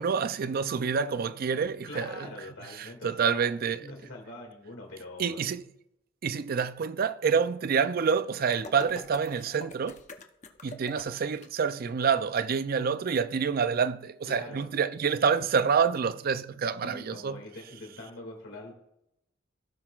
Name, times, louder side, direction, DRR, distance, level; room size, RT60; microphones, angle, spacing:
voice 1, 0.0-2.3 2.8-3.8 5.2-5.6 6.2-10.0 10.6-17.4, right 6 dB, 50° right, 0.4 m, -27 dB
voice 2, 1.9-5.4 14.3-14.7 16.8-18.7, left 2 dB, 85° left, 2.1 m, -44 dB
sound 1, 8.4-11.5, left 3 dB, 40° left, 0.8 m, -45 dB
16.5 x 5.9 x 2.4 m
head